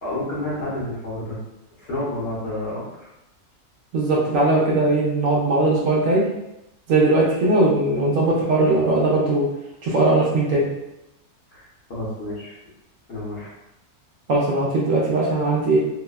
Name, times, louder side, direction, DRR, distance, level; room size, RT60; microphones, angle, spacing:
voice 1, 0.0-1.4 1.8-2.8 11.5-12.5 13.1-13.5, left 1 dB, 55° left, -8 dB, 0.8 m, -29 dB
voice 2, 3.9-6.2 6.9-9.5 9.8-10.7 14.3-15.8, right 2 dB, 70° right, -4 dB, 0.9 m, -19 dB
2.7 x 2.0 x 2.2 m, 0.88 s
omnidirectional pair, 1.6 m